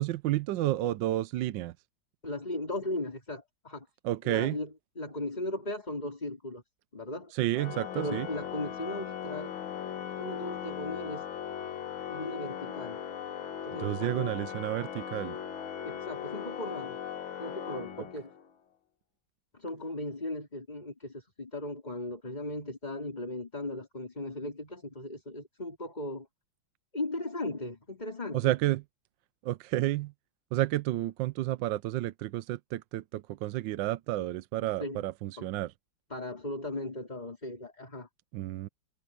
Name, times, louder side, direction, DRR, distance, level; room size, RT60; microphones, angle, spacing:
voice 1, 0.0-1.7 4.0-4.6 7.3-8.3 13.8-15.4 28.3-28.8 29.4-30.1 30.5-35.7 38.3-38.7, right 15 dB, 75° right, 1.3 m, -31 dB
voice 2, 2.2-3.9 4.2-6.6 6.9-7.3 7.9-9.6 10.2-11.2 12.1-13.0 13.6-14.4 15.8-17.0 17.4-18.3 19.5-26.3 26.9-28.5 34.8-35.0 35.4-35.5 36.1-38.1, left 1 dB, 20° left, 4.1 m, -37 dB
Organ, 7.5-18.5, left 9 dB, 90° left, 2.3 m, -38 dB
omnidirectional pair, 2.1 m